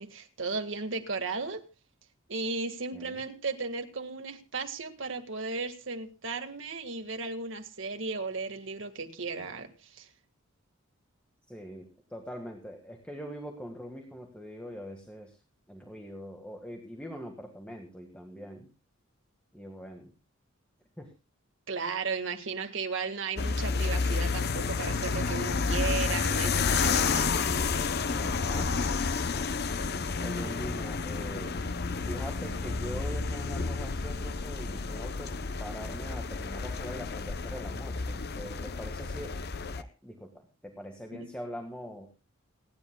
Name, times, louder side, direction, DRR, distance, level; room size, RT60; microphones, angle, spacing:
voice 1, 0.0-1.6 2.3-10.1 21.7-27.3 41.1-41.3, right 4 dB, 65° right, 6 dB, 1.8 m, -35 dB
voice 2, 11.5-15.4 15.7-18.7 19.5-20.1 21.0-21.1 28.1-29.0 29.3-29.5 30.2-31.6 32.0-35.3 35.6-39.3 39.8-42.1, equal, 5° left, 2 dB, 1.7 m, -43 dB
sound 1, 23.4-39.8, left 4 dB, 50° left, 0.7 m, -30 dB
29.0 x 10.5 x 2.3 m, 0.30 s
head